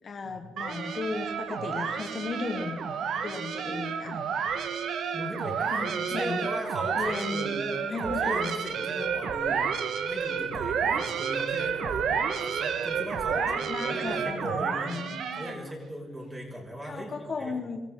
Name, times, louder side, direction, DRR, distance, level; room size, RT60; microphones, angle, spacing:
voice 1, 0.0-2.8 3.2-4.2 5.7-6.5 6.9-8.5 10.8-11.0 13.3-15.2 16.8-17.8, left 4 dB, 45° left, 5 dB, 1.5 m, -35 dB
sound 1, 0.6-15.7, right 6 dB, 70° right, 1.5 m, -30 dB
voice 2, 5.1-12.1 12.4-14.9 15.4-17.7, equal, 15° right, 0 dB, 6.0 m, -39 dB
25.0 x 14.5 x 3.9 m, 1.2 s
cardioid pair, 90°, 0 cm